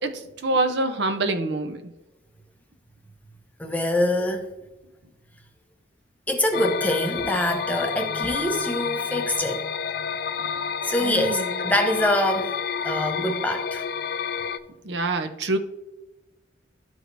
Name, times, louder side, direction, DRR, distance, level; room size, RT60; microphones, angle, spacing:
voice 1, 0.0-1.8 11.0-11.6 14.8-15.6, right 2 dB, 70° right, 0.7 m, -26 dB
voice 2, 3.6-4.5 6.3-9.7 10.8-12.6 12.8-13.8, left 1 dB, 10° left, 0.6 m, -24 dB
sound 1, 6.5-14.6, left 6 dB, 55° left, 0.3 m, -29 dB
12.5 x 4.8 x 2.6 m
head